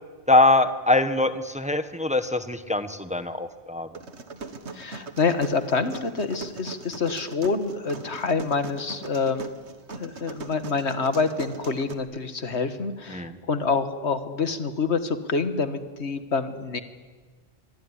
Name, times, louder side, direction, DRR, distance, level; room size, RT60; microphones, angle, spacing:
voice 1, 0.3-3.9 13.1-13.4, left 2 dB, 5° right, 10 dB, 1.1 m, -22 dB
sound 1, 3.9-11.9, right 3 dB, 85° right, 1.9 m, -40 dB
voice 2, 4.7-9.5 9.9-16.8, left 4 dB, 80° left, 9 dB, 1.8 m, -27 dB
24.0 x 24.0 x 10.0 m, 1.5 s
omnidirectional pair, 1.1 m